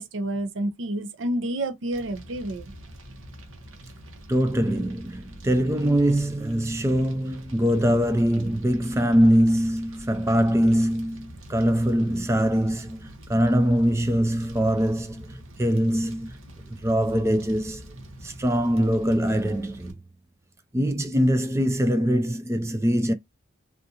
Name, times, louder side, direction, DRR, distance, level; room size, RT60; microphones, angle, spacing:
voice 1, 0.0-2.7, right 1 dB, 70° right, 0.6 m, -29 dB
Fire, 1.9-19.9, equal, 90° right, 1.1 m, -44 dB
voice 2, 4.3-16.3 16.7-17.8 18.2-19.9 20.7-23.1, equal, 15° right, 0.3 m, -23 dB
3.7 x 2.4 x 2.7 m
head